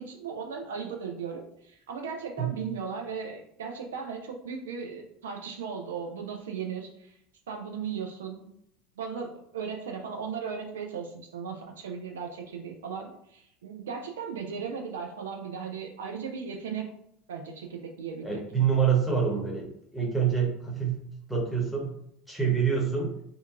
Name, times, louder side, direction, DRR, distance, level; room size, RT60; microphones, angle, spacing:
voice 1, 0.0-7.2 7.5-8.5 9.0-16.9 17.3-18.4, right 6 dB, 85° right, 3 dB, 0.3 m, -37 dB
voice 2, 18.2-21.0 21.3-21.8 22.3-23.1, right 7 dB, ahead, -3 dB, 0.9 m, -26 dB
2.7 x 2.4 x 2.3 m, 0.75 s
hypercardioid pair, 85°, 0 cm